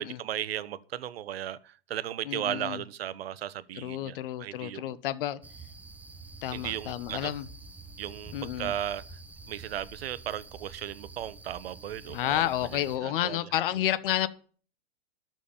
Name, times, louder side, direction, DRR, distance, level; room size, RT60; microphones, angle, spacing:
voice 1, 0.0-5.0 6.5-7.3 8.0-9.0 9.5-13.4, right 11 dB, 80° right, 1.1 m, -36 dB
voice 2, 2.2-2.8 3.7-5.4 6.4-7.5 8.3-8.7 12.1-14.3, left 12 dB, 60° left, 1.3 m, -30 dB
sound 1, 5.4-13.0, right 3 dB, 5° right, 1.0 m, -47 dB
12.5 x 6.3 x 8.9 m
hypercardioid pair, 145°, 30 cm